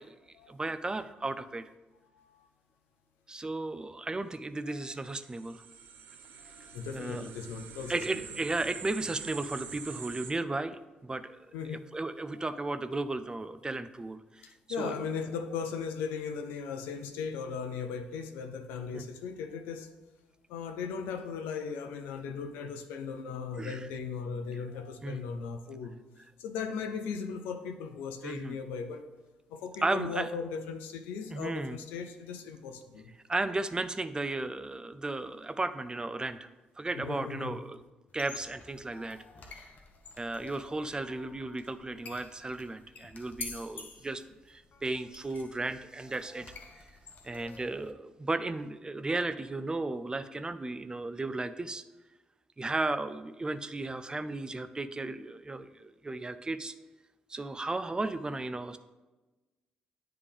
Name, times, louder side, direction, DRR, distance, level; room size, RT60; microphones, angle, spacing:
voice 1, 0.5-1.6 3.3-5.6 6.9-7.2 7.9-11.3 11.7-14.5 14.8-14.9 18.9-19.0 23.6-23.8 25.0-25.2 28.2-28.6 29.8-30.3 31.3-31.8 33.3-36.5 36.8-37.8 38.1-39.2 40.2-44.2 44.5-46.5 47.2-51.8 52.6-56.7 57.3-58.8, right 2 dB, 25° right, 11 dB, 0.5 m, -34 dB
voice 2, 2.1-2.5 4.7-4.9 6.4-8.4 11.5-11.9 12.3-12.6 14.4-19.9 20.5-26.0 26.4-29.0 29.5-33.1 36.9-37.6, left 6 dB, 80° left, 6 dB, 0.6 m, -38 dB
sound 1, 5.0-10.3, right 7 dB, 75° right, 0.6 m, -46 dB
sound 2, 38.1-47.9, left 4 dB, 55° left, 0.8 m, -49 dB
9.6 x 3.4 x 3.5 m, 1.1 s
hypercardioid pair, 50°, 3 cm